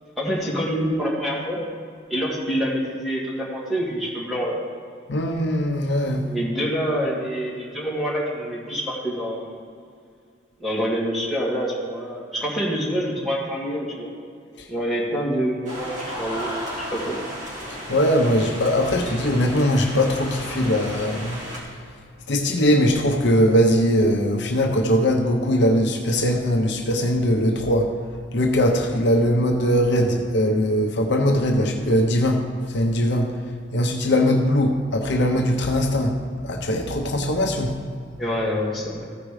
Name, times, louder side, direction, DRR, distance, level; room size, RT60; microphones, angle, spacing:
voice 1, 0.2-1.6 2.1-4.6 6.2-9.6 10.6-14.1 14.7-17.2 38.2-39.0, equal, ahead, -7 dB, 2.1 m, -26 dB
voice 2, 5.1-6.2 14.6-14.7 17.9-21.4 22.3-27.9 28.3-32.4 32.7-33.3 33.7-36.2 36.4-37.8, equal, 60° left, 2 dB, 0.8 m, -20 dB
sound 1, 15.7-21.6, equal, 40° right, 2.1 m, -34 dB
14.5 x 5.0 x 4.8 m, 2.2 s
head